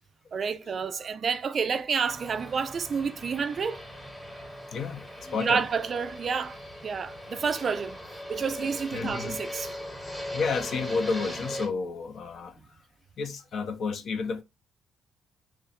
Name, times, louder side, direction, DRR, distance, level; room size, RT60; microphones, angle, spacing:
voice 1, 0.3-3.8 5.4-6.6 6.8-8.0 8.3-9.7, right 6 dB, 40° right, 0.4 m, -29 dB
Fixed-wing aircraft airplane, 2.1-11.7, left 1 dB, 10° left, 1.1 m, -39 dB
voice 2, 4.7-5.6 8.9-9.4 10.3-12.6 13.2-14.4, left 4 dB, 55° left, 0.7 m, -31 dB
3.1 x 2.5 x 4.1 m
cardioid pair, 105°, 0 cm